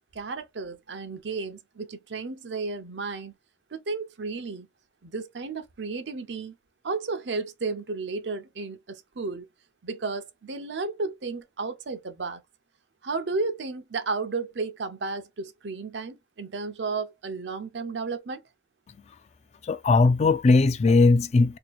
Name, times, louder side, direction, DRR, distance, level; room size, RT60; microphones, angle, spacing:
voice 1, 0.1-3.3 3.7-4.7 5.0-6.6 6.8-9.5 9.8-12.4 13.0-18.4, right 4 dB, 85° right, 0.7 m, -33 dB
voice 2, 19.6-21.6, left 3 dB, 40° left, 0.3 m, -19 dB
2.8 x 2.3 x 4.2 m
head